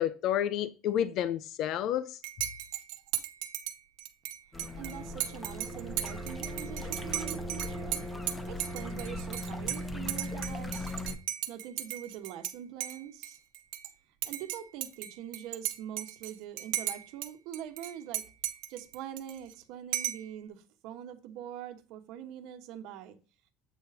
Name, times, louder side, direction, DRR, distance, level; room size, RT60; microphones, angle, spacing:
voice 1, 0.0-2.2, left 10 dB, 50° left, 0.5 m, -30 dB
Dishes pots and pans / Cutlery silverware / Chink clink, 2.2-12.5 12.8-13.9 14.2-17.3 17.5-19.5 19.9-20.3, right 14 dB, 85° right, 1.0 m, -37 dB
sound 1, 4.5-11.2, left 1 dB, 10° left, 0.8 m, -38 dB
voice 2, 4.7-8.1 8.5-10.9 11.5-13.4 14.2-18.2 18.7-23.2, right 10 dB, 65° right, 1.1 m, -43 dB
8.2 x 4.1 x 5.3 m
cardioid pair, 160°, 0 cm